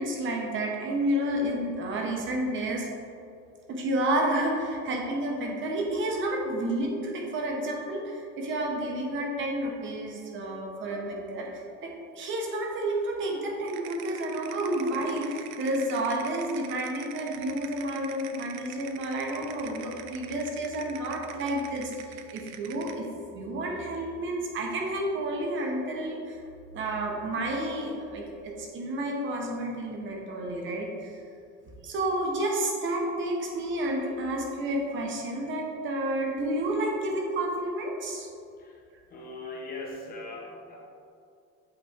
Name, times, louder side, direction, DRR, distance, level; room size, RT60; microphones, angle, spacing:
voice 1, 0.0-2.9 3.7-23.1 23.3-26.4 26.7-31.2 31.8-38.3, right 1 dB, 40° right, 0 dB, 1.1 m, -30 dB
sound 1, 13.7-23.1, right 10 dB, 80° right, 0.5 m, -45 dB
voice 2, 39.1-40.8, left 2 dB, 30° left, -1 dB, 1.1 m, -40 dB
8.1 x 4.3 x 3.6 m, 2.4 s
cardioid pair, 165°, 31 cm